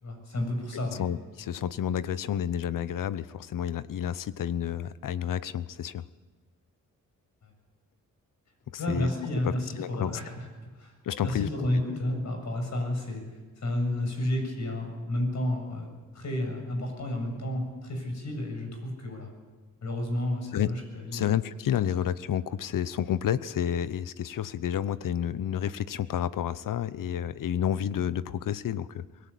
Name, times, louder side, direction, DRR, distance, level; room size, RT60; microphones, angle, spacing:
voice 1, 0.0-1.1 7.4-7.5 8.8-10.4 10.8-10.9 11.2-13.2 13.6-19.3 19.8-21.3, left 1 dB, 55° left, 4 dB, 7.5 m, -31 dB
voice 2, 1.0-6.0 8.7-9.1 9.4-10.2 11.0-11.5 20.5-20.7 21.1-29.0, left 10 dB, 75° left, 16 dB, 0.9 m, -30 dB
23.5 x 18.0 x 8.5 m, 1.3 s
cardioid pair, 90°, 33 cm